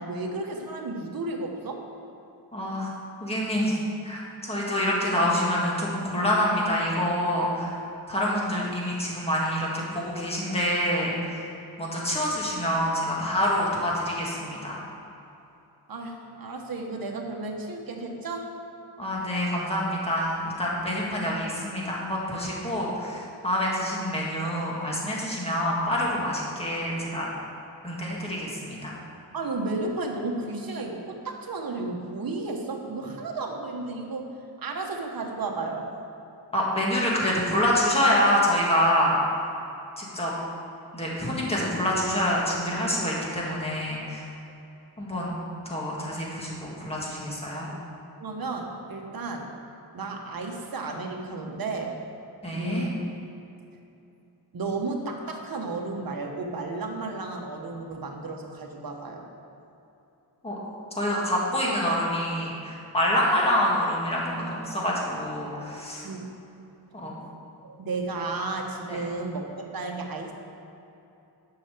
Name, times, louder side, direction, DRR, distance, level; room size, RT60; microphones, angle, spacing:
voice 1, 0.0-1.8 15.9-18.6 29.3-34.3 34.6-35.9 47.7-47.8 48.2-49.5 49.9-51.9 52.5-53.2 54.5-59.2 66.0-66.3 67.6-70.3, right 3 dB, 60° right, 2 dB, 1.3 m, -33 dB
voice 2, 2.5-2.9 3.2-7.8 8.1-11.5 11.8-14.8 19.0-27.3 27.8-29.0 36.5-39.2 40.0-40.3 40.9-44.3 45.0-45.3 45.7-47.7 52.4-52.9 60.4-60.6 61.0-66.1 66.9-67.1 68.9-69.0, equal, 15° left, -4 dB, 1.9 m, -26 dB
11.0 x 5.8 x 6.8 m, 2.9 s
wide cardioid pair, 165°, 40 cm